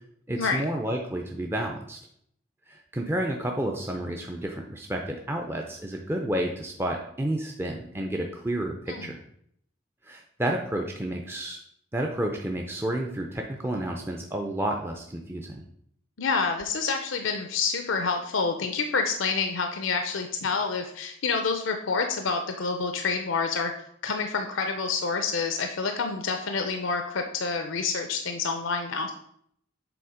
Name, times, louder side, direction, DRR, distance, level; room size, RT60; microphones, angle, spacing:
voice 1, 0.3-2.0 2.7-9.2 10.1-11.6 11.9-15.6, right 1 dB, 10° right, 1 dB, 0.4 m, -30 dB
voice 2, 16.2-23.7 24.0-29.1, left 4 dB, 70° left, 6 dB, 0.5 m, -28 dB
7.0 x 3.9 x 4.9 m, 0.70 s
head